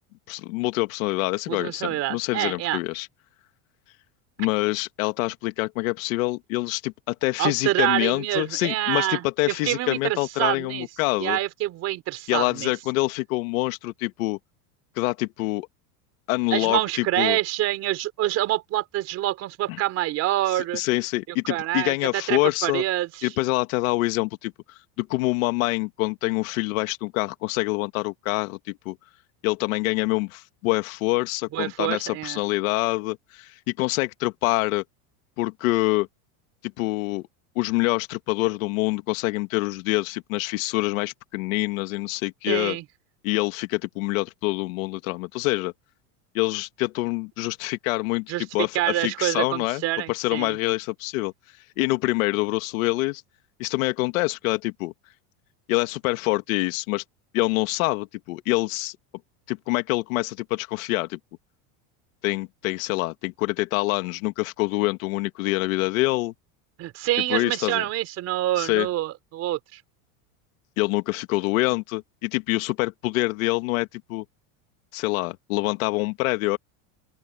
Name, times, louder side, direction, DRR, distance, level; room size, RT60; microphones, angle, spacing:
voice 1, 0.3-3.1 4.4-11.4 12.3-14.4 15.0-15.7 16.3-17.4 20.5-22.8 23.2-24.5 25.0-29.0 29.4-34.8 35.4-36.1 36.8-37.3 37.6-42.8 43.2-45.7 46.3-49.8 50.1-51.3 51.8-53.2 53.6-54.9 55.7-57.0 57.3-59.0 59.5-61.2 62.2-66.3 67.3-67.8 68.6-68.9 70.8-74.2 74.9-76.6, left 21 dB, 65° left, 2.1 m, -26 dB
voice 2, 1.5-2.8 7.4-10.9 11.2-12.7 16.5-20.8 21.5-23.3 31.5-32.4 42.5-42.8 48.3-50.6 66.8-69.8, right 15 dB, 35° right, 3.9 m, -26 dB
open air
supercardioid pair, 170°, 43 cm